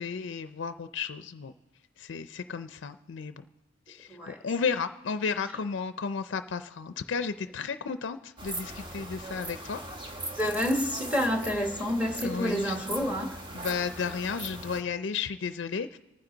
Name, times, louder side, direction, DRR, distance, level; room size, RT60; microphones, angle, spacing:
voice 1, 0.0-1.5 2.0-3.4 3.9-10.2 12.2-12.8 13.5-16.0, left 5 dB, 70° left, 0.4 m, -33 dB
sound 1, 8.4-14.8, right 1 dB, 25° right, 1.0 m, -40 dB
voice 2, 10.4-13.4, equal, 5° right, 1.3 m, -28 dB
25.5 x 9.6 x 3.9 m
head